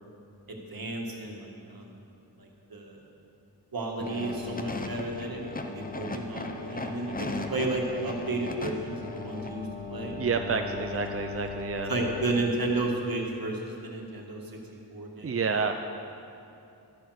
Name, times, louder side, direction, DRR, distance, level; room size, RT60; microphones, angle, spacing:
voice 1, 0.5-2.0 2.4-3.0 3.7-10.2 11.9-14.4 14.9-15.4, right 2 dB, 60° right, 0 dB, 1.9 m, -32 dB
sound 1, 4.0-12.4, left 3 dB, 20° left, 0.8 m, -37 dB
voice 2, 10.2-11.9 15.2-15.7, right 5 dB, 35° right, 5 dB, 0.5 m, -29 dB
13.0 x 8.8 x 6.4 m, 2.7 s
wide cardioid pair, 100°, 40 cm